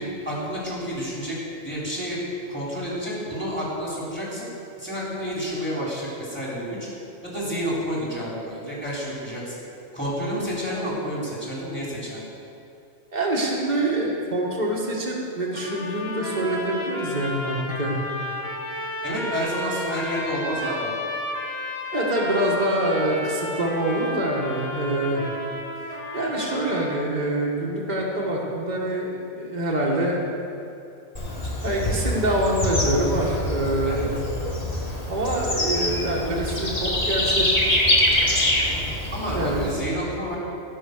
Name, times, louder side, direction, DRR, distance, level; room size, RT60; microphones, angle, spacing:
voice 1, 0.0-1.4 1.6-4.5 4.8-6.9 7.2-9.6 9.9-12.2 19.0-20.9 33.8-34.1 39.1-40.4, equal, 10° left, -6 dB, 3.4 m, -29 dB
voice 2, 13.1-17.9 21.9-25.2 26.1-30.3 31.6-34.1 34.9-37.5 39.3-39.6, right 1 dB, 40° right, -2 dB, 1.8 m, -25 dB
sound 1, 15.5-27.1, left 1 dB, 60° left, 1.8 m, -33 dB
Bird / Insect, 31.1-39.7, left 1 dB, 35° left, 1.7 m, -25 dB
16.5 x 6.2 x 6.6 m, 2.6 s
omnidirectional pair, 1.2 m